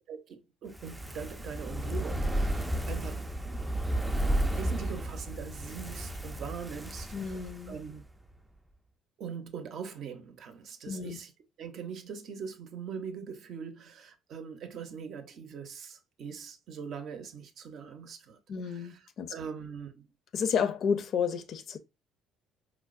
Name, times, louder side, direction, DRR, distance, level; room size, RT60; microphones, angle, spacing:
voice 1, 0.1-3.7 4.3-8.0 9.2-11.3 11.6-18.4 18.7-19.0 19.3-20.1, right 6 dB, 60° right, 0.6 m, -42 dB
Fire, 0.7-8.0 8.3-8.4, right 1 dB, 10° right, 0.4 m, -33 dB
voice 2, 7.1-7.8 10.9-11.2 18.5-19.3 20.3-21.8, left 7 dB, 55° left, 0.5 m, -31 dB
4.6 x 2.0 x 2.4 m
cardioid pair, 95°, 0 cm